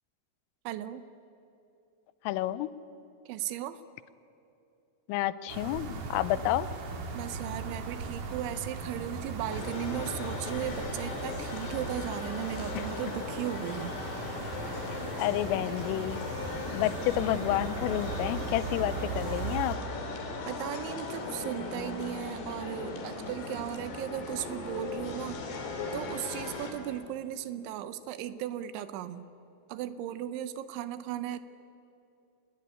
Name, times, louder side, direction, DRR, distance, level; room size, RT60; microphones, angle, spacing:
voice 1, 0.7-1.0 3.3-3.8 7.1-13.9 20.5-25.4 25.9-29.3 29.7-31.4, right 11 dB, 80° right, 13 dB, 3.0 m, -36 dB
voice 2, 2.3-2.7 5.1-6.7 15.2-16.3 16.7-19.8, left 14 dB, 90° left, 16 dB, 3.4 m, -30 dB
sound 1, 5.5-19.8, right 4 dB, 50° right, 3.3 m, -38 dB
sound 2, 9.5-26.7, left 3 dB, 60° left, 4.7 m, -38 dB
25.5 x 20.5 x 9.6 m, 2.7 s
omnidirectional pair, 5.8 m